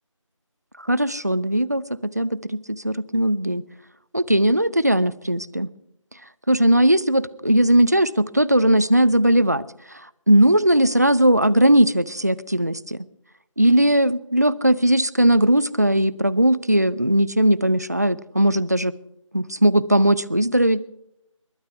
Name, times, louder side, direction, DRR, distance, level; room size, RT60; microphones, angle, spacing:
voice 1, 0.9-3.6 4.1-5.7 6.5-9.7 10.3-13.0 13.6-18.9 19.3-20.8, right 1 dB, 30° right, 20 dB, 0.5 m, -18 dB
22.0 x 15.5 x 3.5 m, 0.80 s
figure-of-eight pair, 165°, 17 cm